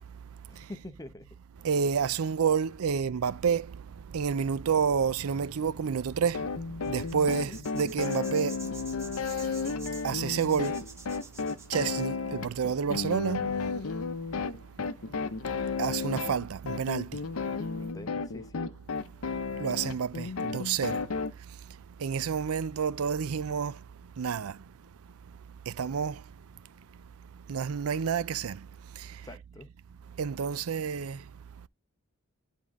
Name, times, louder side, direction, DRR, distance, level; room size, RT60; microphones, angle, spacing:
voice 1, 0.5-1.3 7.5-7.6 17.8-18.6 29.2-29.7, left 1 dB, 15° left, 0.8 m, -45 dB
voice 2, 1.6-3.8 4.1-6.5 6.8-8.6 10.0-10.8 11.7-13.4 15.8-17.2 19.6-21.0 22.0-23.8 24.2-24.6 25.7-26.2 27.5-28.6 29.0-29.1 30.2-31.2, right 6 dB, 75° right, 0.5 m, -29 dB
sound 1, 6.3-21.3, left 4 dB, 70° left, 0.7 m, -33 dB
sound 2, 6.8-12.0, right 4 dB, 15° right, 1.3 m, -48 dB
10.5 x 3.7 x 3.5 m
head